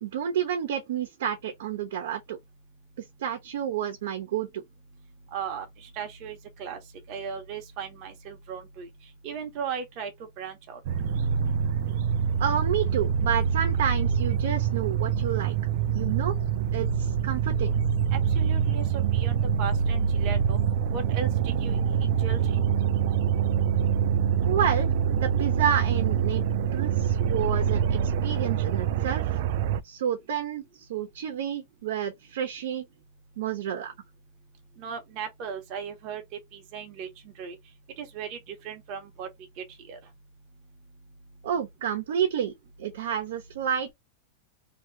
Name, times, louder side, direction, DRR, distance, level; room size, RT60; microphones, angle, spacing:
voice 1, 0.0-2.4 3.2-4.6 12.4-15.6 15.9-16.3 16.7-17.7 24.4-26.4 26.7-29.4 29.8-32.8 33.4-33.9 41.4-42.5 42.8-43.9, right 9 dB, 70° right, 0.9 m, -30 dB
voice 2, 5.3-6.8 7.1-8.9 9.2-10.1 10.4-10.8 18.1-20.6 20.9-22.7 34.8-36.2 36.5-37.1 37.4-37.6 38.0-39.3 39.6-40.0, right 7 dB, 35° right, 1.0 m, -37 dB
sound 1, 10.8-29.8, right 7 dB, 50° right, 0.3 m, -25 dB
2.9 x 2.9 x 2.7 m
supercardioid pair, 175°, 0 cm